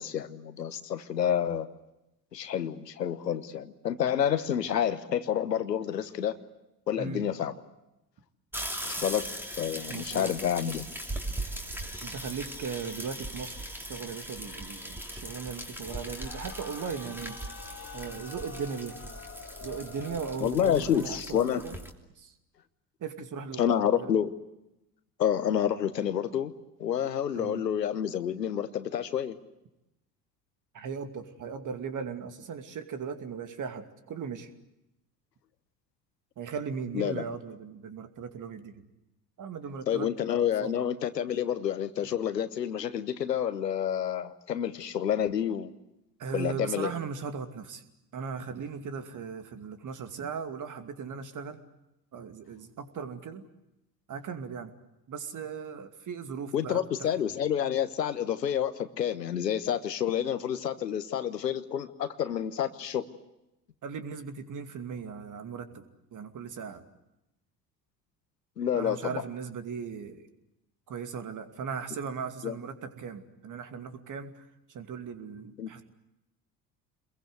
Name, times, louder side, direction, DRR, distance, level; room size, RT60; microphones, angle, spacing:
voice 1, 0.0-1.7 2.3-6.3 6.9-7.5 8.9-9.3 9.6-10.9 20.4-21.6 23.6-24.3 25.2-26.5 26.8-29.3 36.9-37.2 39.9-45.7 46.3-46.9 56.5-63.0 68.6-69.2 72.4-72.6 75.6-75.8, left 9 dB, 80° left, 13 dB, 1.2 m, -29 dB
voice 2, 6.9-7.3 9.9-10.3 12.0-17.4 17.9-19.0 19.6-21.8 22.2-22.3 23.0-24.1 27.3-27.6 30.7-34.5 36.4-38.8 39.4-40.1 40.6-40.7 46.2-47.8 48.1-51.6 52.1-53.4 54.1-54.7 55.1-57.1 63.8-66.8 68.7-70.3 70.9-75.8, right 6 dB, 40° right, 9 dB, 2.6 m, -38 dB
sound 1, 8.5-21.9, right 1 dB, 5° right, 3.1 m, -39 dB
sound 2, 15.8-20.7, left 6 dB, 25° left, 3.0 m, -46 dB
28.0 x 22.0 x 8.1 m, 0.91 s
figure-of-eight pair, 60°, 49 cm